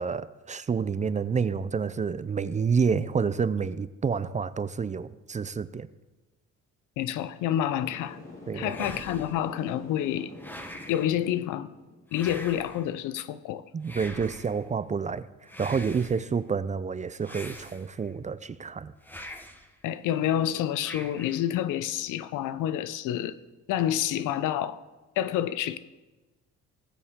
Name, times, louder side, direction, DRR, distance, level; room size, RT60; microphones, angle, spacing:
voice 1, 0.0-5.9 8.5-8.9 13.7-15.3 15.6-18.9, right 5 dB, 25° right, 0.4 m, -29 dB
voice 2, 7.0-8.2 8.5-10.3 10.9-11.7 12.1-13.6 19.8-23.4 23.7-24.8 25.2-25.8, left 11 dB, 90° left, 0.6 m, -28 dB
sound 1, 7.8-12.0, left 2 dB, 45° left, 2.7 m, -46 dB
sound 2, 8.7-9.5 10.4-11.1 12.1-12.9 13.8-14.6 15.5-16.3 17.2-18.1 19.0-19.7 20.8-21.5, equal, 5° left, 1.2 m, -43 dB
19.5 x 6.9 x 3.6 m
cardioid pair, 90°, 30 cm